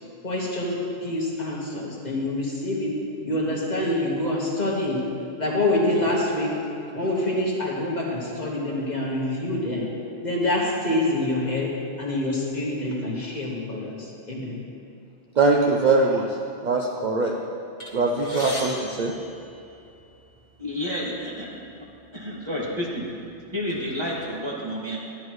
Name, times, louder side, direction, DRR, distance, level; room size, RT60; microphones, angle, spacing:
voice 1, 0.2-3.0 3.2-5.0 5.4-6.5 6.9-9.9 10.2-11.7 12.0-14.6, left 1 dB, 40° left, -4 dB, 1.5 m, -26 dB
voice 2, 15.4-16.3 16.6-17.3 17.9-19.1, right 3 dB, 50° right, -1 dB, 0.7 m, -21 dB
sound 1, 17.8-20.1 21.0-21.1 21.4-21.6 22.4-22.6 23.1-24.3, left 1 dB, 55° left, 1.9 m, -38 dB
voice 3, 20.6-21.6 22.1-23.1 23.5-25.0, equal, 25° right, -5 dB, 1.8 m, -30 dB
12.0 x 10.5 x 3.1 m, 2.6 s
omnidirectional pair, 1.1 m